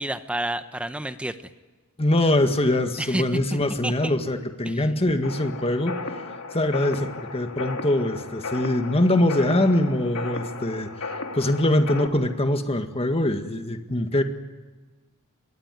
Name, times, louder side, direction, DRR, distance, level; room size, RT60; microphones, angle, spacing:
voice 1, 0.0-1.3 3.0-4.1 4.7-4.8, right 1 dB, 5° right, 10 dB, 0.8 m, -30 dB
voice 2, 2.0-6.0 6.5-14.2, left 1 dB, 25° left, 6 dB, 1.8 m, -23 dB
sound 1, 5.2-12.1, left 3 dB, 80° left, 3.0 m, -35 dB
26.5 x 22.0 x 9.3 m, 1.2 s
head